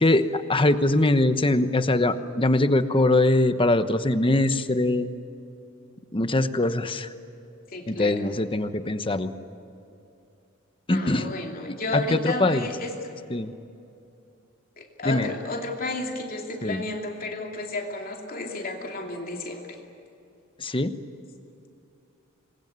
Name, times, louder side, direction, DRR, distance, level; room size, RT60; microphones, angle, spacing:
voice 1, 0.0-5.1 6.1-7.1 7.9-9.3 10.9-11.3 11.7-12.7 13.3-13.5 15.0-15.3 16.6-16.8 20.6-20.9, left 2 dB, 25° left, 10 dB, 1.0 m, -22 dB
voice 2, 7.7-8.3 10.9-13.1 14.8-19.8, left 2 dB, 45° left, 1 dB, 2.8 m, -32 dB
27.0 x 21.5 x 9.5 m, 2.6 s
head